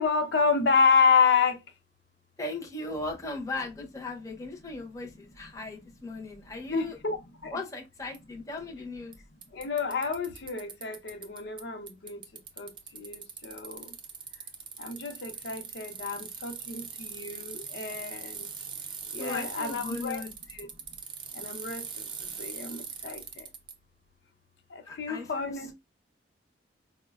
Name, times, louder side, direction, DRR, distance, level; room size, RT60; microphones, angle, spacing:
voice 1, 0.0-1.6 6.7-7.6 9.5-12.2 12.6-14.0 14.8-18.5 19.1-20.2 20.5-20.7 21.3-23.5 24.7-25.7, left 5 dB, 70° left, 0.6 m, -29 dB
voice 2, 2.4-7.0 7.5-9.2 19.2-20.3 24.9-25.7, left 2 dB, 20° left, 0.6 m, -38 dB
Bicycle, 8.1-8.2 9.1-9.2 9.4-11.6 11.9-23.7, right 6 dB, 25° right, 0.5 m, -41 dB
4.6 x 2.1 x 2.3 m
head